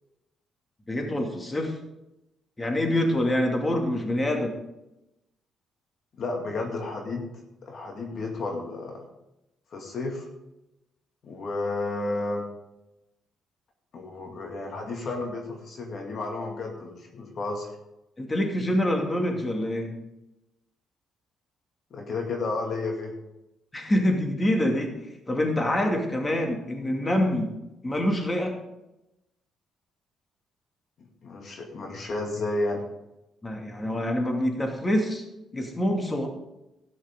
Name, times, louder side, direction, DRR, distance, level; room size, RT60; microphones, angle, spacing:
voice 1, 0.9-1.8 2.6-4.5 18.2-19.9 23.7-25.0 25.3-27.5 27.8-28.6 33.4-35.2 35.5-36.3, left 1 dB, 20° left, 2 dB, 2.5 m, -26 dB
voice 2, 6.2-7.3 7.6-9.1 9.7-10.3 11.2-12.5 13.9-17.7 21.9-23.1 31.0-32.8, left 2 dB, 60° left, 1 dB, 2.2 m, -32 dB
13.0 x 10.0 x 3.8 m, 0.92 s
supercardioid pair, 75°, 0 cm